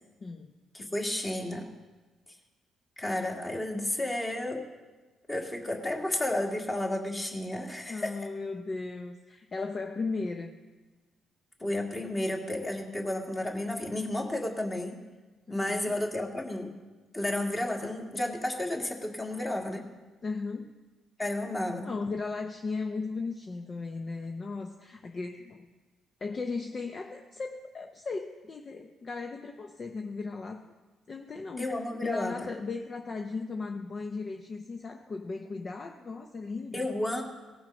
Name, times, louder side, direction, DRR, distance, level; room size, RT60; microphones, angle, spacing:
voice 1, 0.2-0.5 7.9-10.5 15.5-15.9 20.2-20.7 21.8-25.7 26.2-30.7 31.1-36.9, left 4 dB, 40° left, 4 dB, 0.7 m, -36 dB
voice 2, 0.7-1.7 3.0-4.7 5.3-8.1 11.6-15.0 15.5-16.7 17.1-19.9 21.2-21.9 31.6-32.5 36.7-37.2, left 1 dB, 20° left, 1 dB, 1.9 m, -32 dB
18.0 x 6.0 x 5.3 m, 1.3 s
cardioid pair, 90°, 0 cm